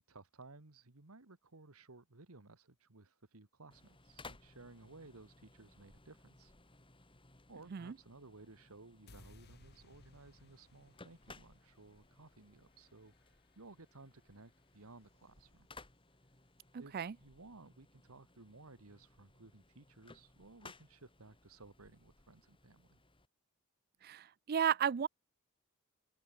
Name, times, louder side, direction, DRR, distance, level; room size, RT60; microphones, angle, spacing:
voice 1, 0.0-6.5 7.5-15.7 16.1-16.2 16.8-23.0, right 3 dB, 85° right, 1.8 m, -58 dB
sound 1, 3.7-23.3, left 3 dB, 25° left, 3.6 m, -60 dB
sound 2, 9.1-15.2, left 2 dB, 50° left, 1.7 m, -64 dB
voice 2, 16.7-17.1 24.0-25.1, right 8 dB, 45° right, 0.4 m, -34 dB
head